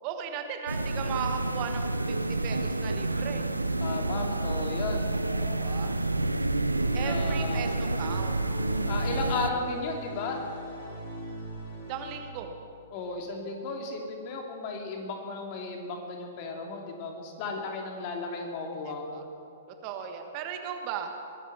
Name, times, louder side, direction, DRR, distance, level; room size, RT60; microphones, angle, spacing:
voice 1, 0.0-3.5 5.6-6.0 6.9-8.4 11.9-12.5 19.1-19.2 19.7-21.1, right 7 dB, 40° right, 5 dB, 1.4 m, -36 dB
sound 1, 0.7-9.5, right 2 dB, 90° right, 0.6 m, -29 dB
voice 2, 3.8-5.7 7.0-7.7 8.9-10.4 12.9-19.2, left 3 dB, 40° left, 1 dB, 2.9 m, -35 dB
sound 2, 6.7-12.1, right 1 dB, 60° left, 5.1 m, -40 dB
21.5 x 11.0 x 6.2 m, 2.6 s
figure-of-eight pair, 110°, 0 cm